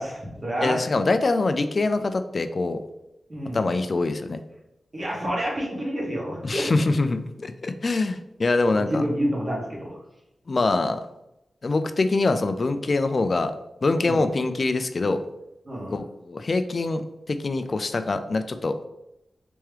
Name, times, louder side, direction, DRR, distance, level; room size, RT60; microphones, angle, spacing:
voice 1, 0.0-0.8 3.3-3.7 4.9-6.7 8.7-10.0 14.0-14.3 15.6-16.0, equal, 35° right, -3 dB, 1.2 m, -28 dB
voice 2, 0.6-2.8 3.5-4.4 6.4-9.0 10.5-11.0 11.6-13.5 13.8-15.2 15.9-17.0 17.3-18.7, left 3 dB, 45° left, 9 dB, 0.3 m, -24 dB
3.4 x 3.0 x 3.2 m, 0.88 s
wide cardioid pair, 115°, 0 cm